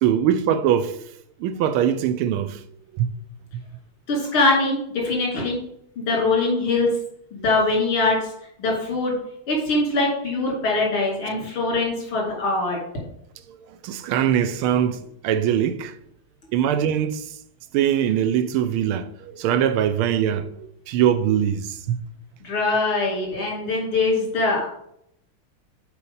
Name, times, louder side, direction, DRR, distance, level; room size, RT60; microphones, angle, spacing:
voice 1, 0.0-1.0 1.4-2.6 2.9-3.1 13.5-15.9 16.5-17.2 17.7-22.0, right 9 dB, 85° right, 1.5 m, -22 dB
voice 2, 4.1-5.6 6.0-6.9 7.3-8.3 8.6-9.2 9.5-12.8 22.4-24.7, left 3 dB, 80° left, 3.5 m, -22 dB
6.9 x 4.5 x 5.3 m
omnidirectional pair, 2.3 m